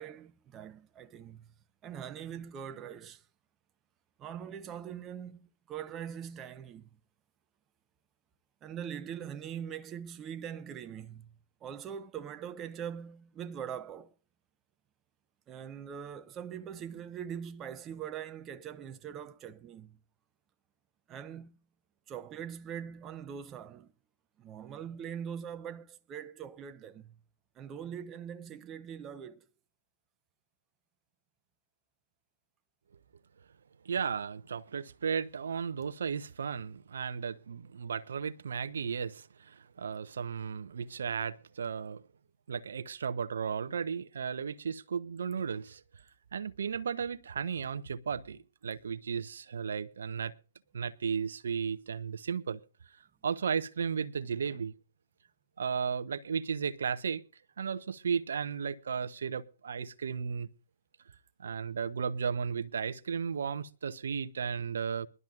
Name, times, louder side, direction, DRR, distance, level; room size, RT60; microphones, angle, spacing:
voice 1, 0.0-1.5 1.8-3.2 4.2-6.9 8.6-11.3 11.6-14.1 15.5-20.0 21.1-21.6 22.1-23.9 24.4-27.2 27.6-29.4, right 8 dB, 25° right, 0.8 m, -42 dB
voice 2, 33.8-42.0 42.5-45.8 46.3-50.3 50.7-52.6 52.9-53.0 53.2-54.7 55.6-57.2 57.6-60.5 61.4-65.1, right 6 dB, 70° right, 0.8 m, -34 dB
22.0 x 12.0 x 2.5 m
figure-of-eight pair, 120°, 0 cm